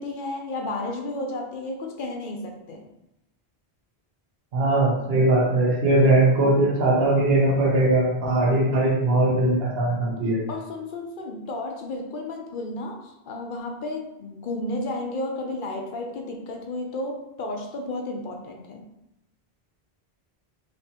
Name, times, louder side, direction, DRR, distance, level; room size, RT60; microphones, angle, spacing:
voice 1, 0.0-2.8 10.5-18.8, left 2 dB, 60° left, 2 dB, 0.7 m, -32 dB
voice 2, 4.5-10.4, right 2 dB, 70° right, -3 dB, 1.1 m, -20 dB
4.3 x 2.7 x 2.7 m, 0.88 s
omnidirectional pair, 1.1 m